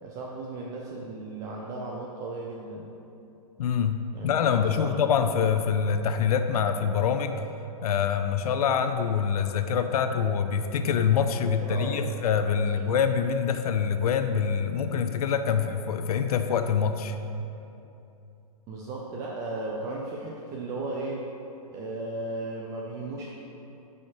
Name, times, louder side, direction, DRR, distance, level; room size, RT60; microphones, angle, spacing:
voice 1, 0.0-2.9 4.1-5.1 11.6-12.1 12.6-12.8 18.7-21.2 21.6-23.3, right 2 dB, 15° right, -2 dB, 0.3 m, -36 dB
voice 2, 3.6-7.4 7.8-17.2, left 7 dB, 70° left, 8 dB, 0.5 m, -25 dB
8.6 x 4.9 x 2.9 m, 2.8 s
hypercardioid pair, 145°, 20 cm